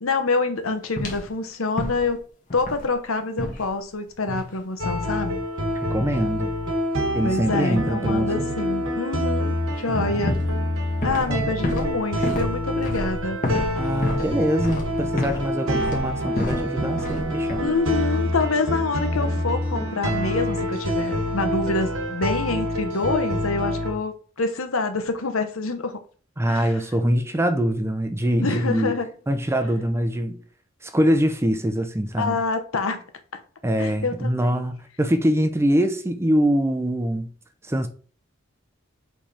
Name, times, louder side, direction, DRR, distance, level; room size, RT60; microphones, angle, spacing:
voice 1, 0.0-2.2 2.5-5.4 7.2-10.4 11.0-13.5 17.6-26.0 26.5-26.7 28.4-29.1 32.2-33.0 33.8-34.6, left 3 dB, 90° left, 1.1 m, -26 dB
sound 1, 1.0-1.3 1.8-2.2 2.5-2.9 3.4-3.7 4.3-4.6 4.8-5.1 9.7-9.9 10.3-11.4 11.6-15.5 15.7-16.7 17.0-17.2 17.5-17.8, left 1 dB, 40° left, 1.7 m, -30 dB
sound 2, 4.8-23.9, equal, 75° right, 1.5 m, -26 dB
voice 2, 5.9-6.5 7.1-8.5 9.9-10.2 11.3-11.9 13.8-17.6 26.4-28.9 29.3-30.4 30.8-32.4 33.6-37.3 37.7-37.9, equal, 15° right, 0.6 m, -24 dB
7.5 x 3.5 x 4.3 m
head